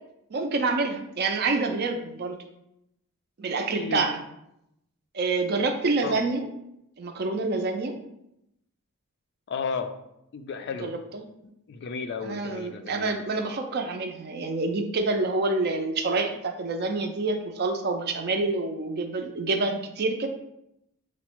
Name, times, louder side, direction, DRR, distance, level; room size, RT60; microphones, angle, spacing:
voice 1, 0.3-2.4 3.4-4.2 5.1-6.5 7.0-7.9 10.8-11.3 12.2-20.3, right 3 dB, 45° right, 5 dB, 0.4 m, -27 dB
voice 2, 3.7-4.0 6.0-6.2 9.5-9.9 10.3-10.9 11.7-13.1, left 5 dB, 50° left, 8 dB, 0.3 m, -33 dB
4.5 x 2.0 x 4.4 m, 0.82 s
head